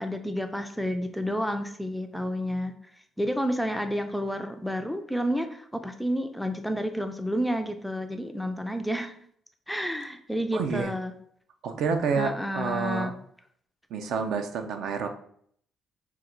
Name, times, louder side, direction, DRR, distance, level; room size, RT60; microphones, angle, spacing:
voice 1, 0.0-2.8 3.2-9.1 9.7-11.1 12.2-13.2, equal, ahead, 6 dB, 0.3 m, -30 dB
voice 2, 10.5-10.9 11.6-13.1 13.9-15.1, right 5 dB, 70° right, 6 dB, 0.5 m, -29 dB
3.8 x 2.3 x 4.3 m, 0.64 s
cardioid pair, 135°, 0 cm